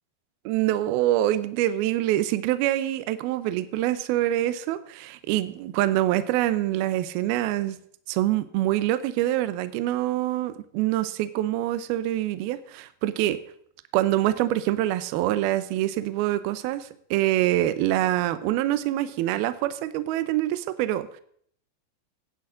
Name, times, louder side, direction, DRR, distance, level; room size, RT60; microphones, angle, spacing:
voice 1, 0.5-7.8 8.1-13.4 13.9-21.2, right 14 dB, 85° right, 13 dB, 2.2 m, -25 dB
17.5 x 10.5 x 3.8 m, 0.62 s
omnidirectional pair, 5.3 m